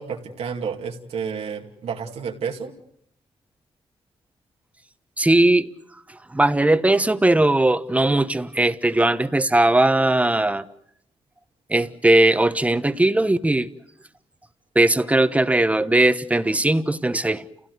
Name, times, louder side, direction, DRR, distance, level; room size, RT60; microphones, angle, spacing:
voice 1, 0.0-2.7, right 6 dB, 85° right, 2.5 m, -30 dB
voice 2, 5.2-5.7 6.3-10.6 11.7-13.7 14.7-17.4, right 1 dB, 15° right, 1.2 m, -19 dB
30.0 x 16.5 x 8.0 m
cardioid pair, 85°, 10 cm